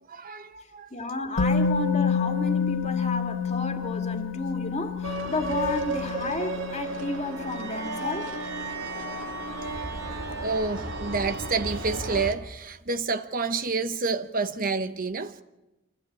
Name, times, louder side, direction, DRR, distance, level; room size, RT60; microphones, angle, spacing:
voice 1, 0.1-0.9 7.7-7.8 9.0-15.3, right 4 dB, 45° right, 1.0 m, -30 dB
voice 2, 0.9-8.3, left 2 dB, 35° left, 2.3 m, -32 dB
Musical instrument, 1.4-9.3 9.6-9.7, left 5 dB, 75° left, 2.0 m, -29 dB
sound 1, 5.0-12.3, right 2 dB, 70° right, 2.6 m, -33 dB
27.0 x 15.5 x 8.8 m
head